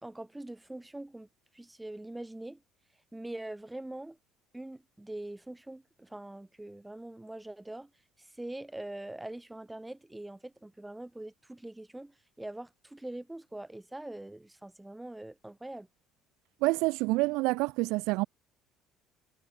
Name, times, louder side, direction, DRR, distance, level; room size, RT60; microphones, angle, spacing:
voice 1, 0.0-1.3 1.5-2.6 3.1-4.2 4.5-7.9 8.2-15.9, right 1 dB, 10° right, 4.8 m, -43 dB
voice 2, 16.6-18.3, right 23 dB, 70° right, 0.5 m, -27 dB
hypercardioid pair, 65°, 0 cm